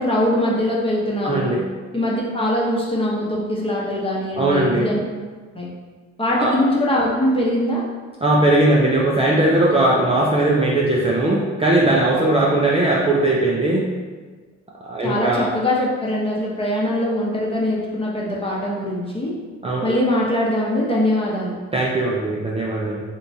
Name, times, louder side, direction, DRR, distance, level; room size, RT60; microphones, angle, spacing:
voice 1, 0.0-1.5 1.9-5.0 5.5-5.7 6.2-7.8 15.0-19.3 19.8-21.6, left 1 dB, 20° left, -4 dB, 0.8 m, -22 dB
voice 2, 1.2-1.6 4.4-4.9 6.3-6.5 8.2-13.8 14.8-15.5 19.6-19.9 21.7-23.0, right 2 dB, 20° right, -4 dB, 0.4 m, -19 dB
3.4 x 3.0 x 2.6 m, 1.4 s
cardioid pair, 90°, 30 cm